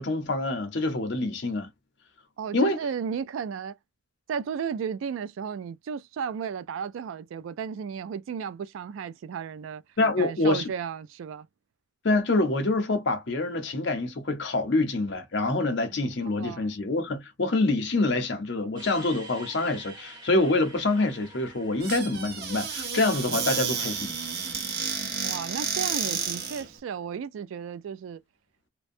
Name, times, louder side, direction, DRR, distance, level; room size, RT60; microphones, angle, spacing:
voice 1, 0.0-1.7 2.5-2.8 10.0-10.7 12.0-24.1, left 2 dB, 60° left, 0.7 m, -26 dB
voice 2, 2.4-3.8 4.3-9.8 10.2-11.5 15.9-16.0 16.4-16.7 23.7-23.9 25.2-28.2, right 7 dB, 80° right, 0.3 m, -34 dB
sound 1, 18.8-24.2, right 2 dB, 20° right, 1.1 m, -48 dB
Squeak / Cupboard open or close, 21.8-26.7, right 6 dB, 50° right, 0.7 m, -31 dB
2.5 x 2.1 x 2.5 m
head